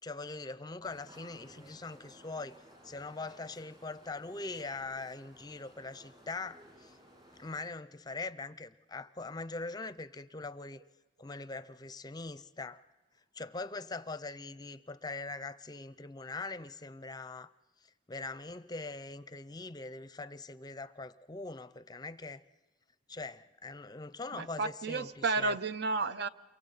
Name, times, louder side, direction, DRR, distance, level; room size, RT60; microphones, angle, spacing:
voice 1, 0.0-2.5 2.8-7.0 7.4-10.8 11.2-12.8 13.3-17.5 18.1-22.4 23.1-25.6, left 3 dB, 25° left, 14 dB, 0.6 m, -42 dB
sound 1, 0.8-7.6, equal, 30° right, 7.6 m, -58 dB
voice 2, 24.3-26.3, right 3 dB, 65° right, 13 dB, 0.7 m, -32 dB
28.5 x 23.5 x 4.0 m, 1.1 s
head